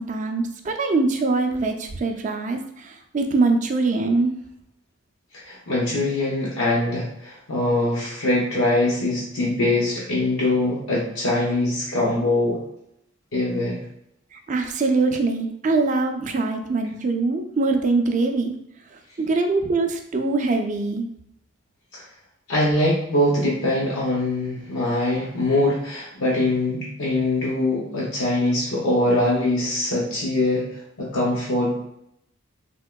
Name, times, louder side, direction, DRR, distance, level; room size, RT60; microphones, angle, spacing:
voice 1, 0.0-4.3 14.3-18.5 19.2-21.0, right 3 dB, 35° right, 5 dB, 0.3 m, -23 dB
voice 2, 5.3-12.6 13.3-13.8 21.9-22.0 22.5-31.8, left 1 dB, 75° left, -5 dB, 0.8 m, -23 dB
3.6 x 2.8 x 2.2 m, 0.77 s
head